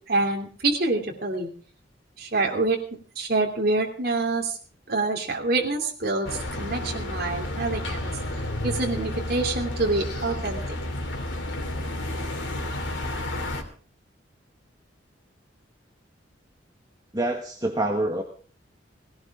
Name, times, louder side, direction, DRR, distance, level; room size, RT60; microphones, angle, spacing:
voice 1, 0.1-1.5 2.2-2.8 3.2-4.6 4.9-8.1 8.6-10.6, right 3 dB, 55° right, 0 dB, 2.9 m, -26 dB
sound 1, 6.3-13.6, left 1 dB, 85° left, 3.0 m, -31 dB
voice 2, 17.1-18.2, right 1 dB, 20° right, 3 dB, 1.4 m, -26 dB
18.5 x 17.5 x 3.7 m, 0.42 s
head